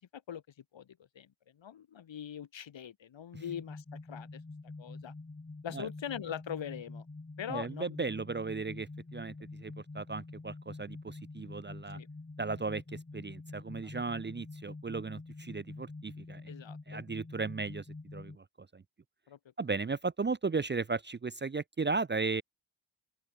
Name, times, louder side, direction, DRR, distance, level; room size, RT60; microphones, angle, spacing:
voice 1, 1.2-4.4 4.8-5.1 5.6-7.1 7.4-8.1 11.9-12.1 16.5-17.0 19.3-19.4, left 9 dB, 70° left, 3.8 m, -42 dB
sound 1, 3.4-18.4, left 3 dB, 20° left, 5.6 m, -46 dB
voice 2, 7.5-9.3 9.6-12.0 12.4-16.5 16.9-17.8 18.1-18.4 18.7-18.8 19.6-22.4, right 4 dB, 25° right, 0.7 m, -36 dB
open air
cardioid pair, 110°, 47 cm